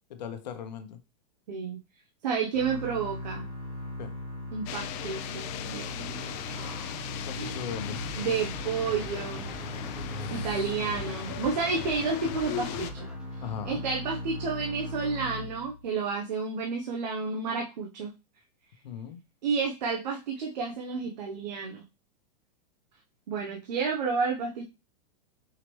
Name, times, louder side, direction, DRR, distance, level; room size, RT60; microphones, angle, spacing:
voice 1, 0.1-1.0 4.0-4.1 7.3-8.0 10.1-10.7 13.4-13.8 18.8-19.2, left 8 dB, 85° left, 7 dB, 0.9 m, -39 dB
voice 2, 1.5-1.8 2.2-3.4 4.5-7.0 7.4-7.6 8.2-9.5 10.3-13.1 13.7-18.1 19.4-21.8 23.3-24.7, right 5 dB, 85° right, 1 dB, 0.8 m, -31 dB
sound 1, 2.5-15.9, left 1 dB, 55° right, 2.0 m, -39 dB
sound 2, 4.7-12.9, left 12 dB, 30° left, 0.4 m, -38 dB
sound 3, 7.7-14.4, equal, 5° right, 0.7 m, -45 dB
4.8 x 3.0 x 3.1 m, 0.29 s
supercardioid pair, 150°, 21 cm